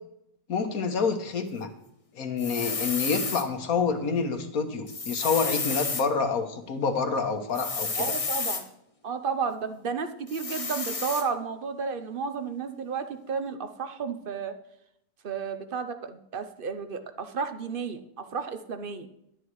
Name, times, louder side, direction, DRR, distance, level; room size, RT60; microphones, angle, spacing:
voice 1, 0.5-1.7 2.2-7.9, left 5 dB, 65° left, 6 dB, 1.6 m, -27 dB
sound 1, 2.4-3.5 4.9-6.1 7.5-8.6 10.3-11.3, left 4 dB, 30° left, 0.8 m, -31 dB
voice 2, 8.0-8.7 9.0-14.5 15.2-19.1, right 5 dB, 45° right, 9 dB, 0.8 m, -32 dB
11.5 x 10.0 x 4.7 m, 0.76 s
omnidirectional pair, 1.6 m